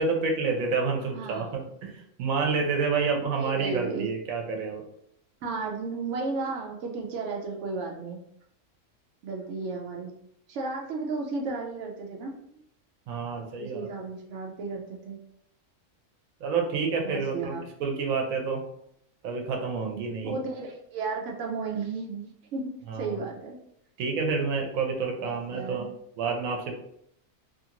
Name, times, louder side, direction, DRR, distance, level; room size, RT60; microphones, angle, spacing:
voice 1, 0.0-4.8 13.1-13.9 16.4-18.6 19.2-20.3 22.9-23.2 24.0-25.9 26.2-26.7, right 4 dB, 90° right, 2 dB, 1.1 m, -29 dB
voice 2, 1.1-1.7 3.3-4.1 5.4-8.2 9.2-10.1 10.5-12.4 13.6-15.2 17.0-17.6 20.2-23.6 25.2-25.9, right 4 dB, 70° right, -1 dB, 0.9 m, -34 dB
2.8 x 2.5 x 2.8 m, 0.72 s
omnidirectional pair, 1.4 m